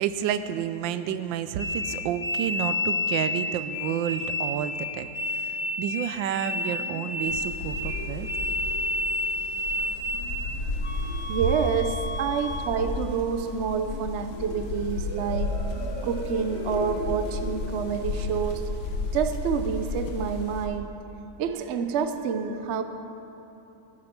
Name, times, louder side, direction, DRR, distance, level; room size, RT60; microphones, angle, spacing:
voice 1, 0.0-8.3 9.8-9.9, right 9 dB, 90° right, 11 dB, 1.3 m, -30 dB
sound 1, 1.6-10.5 10.8-12.7, left 1 dB, 40° left, 1.3 m, -31 dB
sound 2, 6.3-19.9, left 1 dB, 15° right, 1.8 m, -42 dB
sound 3, 7.3-20.7, left 3 dB, 85° left, 1.8 m, -33 dB
voice 2, 11.3-15.6 16.0-18.6 19.1-20.9 21.4-22.8, right 7 dB, 60° right, 8 dB, 0.7 m, -28 dB
14.0 x 9.7 x 5.9 m, 2.9 s
omnidirectional pair, 2.0 m